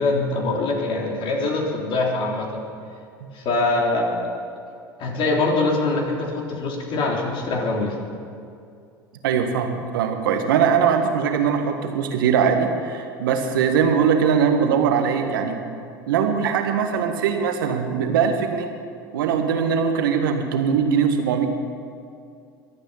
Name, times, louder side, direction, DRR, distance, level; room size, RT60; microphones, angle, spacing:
voice 1, 0.0-2.6 3.3-4.3 5.0-8.0, left 2 dB, 50° left, -1 dB, 3.6 m, -23 dB
voice 2, 9.2-15.6 16.1-18.7 19.1-21.5, right 7 dB, 75° right, 5 dB, 1.6 m, -21 dB
23.5 x 9.0 x 5.7 m, 2.4 s
hypercardioid pair, 75°, 11 cm